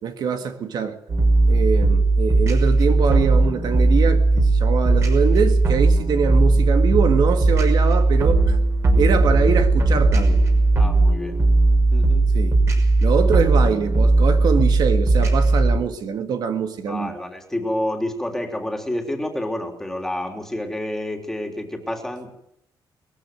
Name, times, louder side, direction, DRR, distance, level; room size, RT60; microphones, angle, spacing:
voice 1, 0.0-1.0 1.4-8.6 8.9-10.4 12.3-12.6 13.0-17.2, right 6 dB, 55° right, 1.9 m, -24 dB
sound 1, 1.1-15.8, right 2 dB, 35° right, 6.0 m, -17 dB
voice 2, 10.8-11.4 11.9-12.3 16.9-22.3, left 1 dB, 5° left, 3.3 m, -29 dB
21.0 x 14.5 x 9.4 m
cardioid pair, 150°, 8 cm